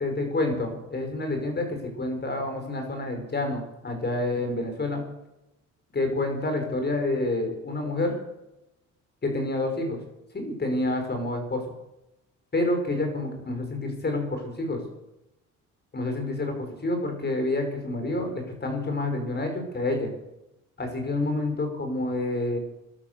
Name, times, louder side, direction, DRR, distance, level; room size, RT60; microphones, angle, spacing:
voice 1, 0.0-5.0 5.9-8.2 9.2-10.0 10.3-11.6 12.5-14.8 15.9-20.1 20.8-22.6, left 2 dB, 35° left, 5 dB, 5.4 m, -28 dB
16.0 x 12.0 x 6.9 m, 0.91 s
cardioid pair, 90°, 30 cm